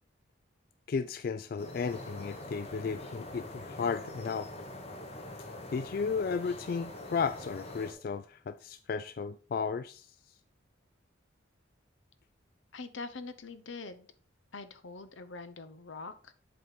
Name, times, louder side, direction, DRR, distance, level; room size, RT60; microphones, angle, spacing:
voice 1, 0.9-4.5 5.7-10.1, left 5 dB, 50° left, 0.3 m, -34 dB
sound 1, 1.6-7.9, left 1 dB, 35° left, 1.2 m, -44 dB
voice 2, 12.7-14.1 14.5-16.3, left 3 dB, 80° left, 0.9 m, -44 dB
7.6 x 4.2 x 5.2 m
head